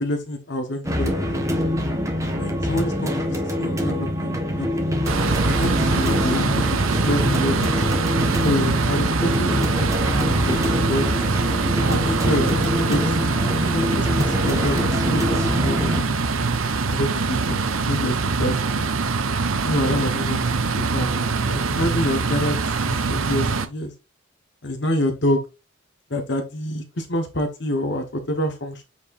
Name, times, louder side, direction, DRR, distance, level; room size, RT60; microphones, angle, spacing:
voice 1, 0.0-1.5 2.4-4.7 5.5-7.6 8.4-9.5 10.2-10.6 10.9-11.1 11.9-16.3 16.9-18.9 19.6-20.4 20.7-21.1 21.4-22.6 22.8-23.9 24.6-25.4 26.1-28.8, left 1 dB, 55° left, 4 dB, 1.3 m, -27 dB
sound 1, 0.8-16.0, equal, 15° right, 1.3 m, -24 dB
sound 2, 5.1-23.7, right 4 dB, 80° right, 0.9 m, -23 dB
8.4 x 4.7 x 2.6 m, 0.28 s
head